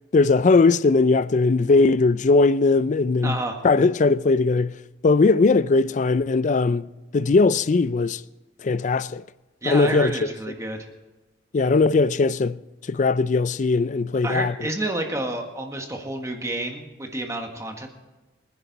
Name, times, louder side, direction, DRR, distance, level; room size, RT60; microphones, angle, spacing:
voice 1, 0.1-3.4 3.6-4.8 5.0-6.9 7.1-8.2 8.6-9.2 9.6-10.1 11.5-12.6 12.9-14.7, left 3 dB, 40° left, 0.4 m, -19 dB
voice 2, 3.2-3.6 9.6-10.9 14.2-17.9, right 1 dB, 15° right, 1.6 m, -29 dB
25.0 x 10.5 x 4.1 m
head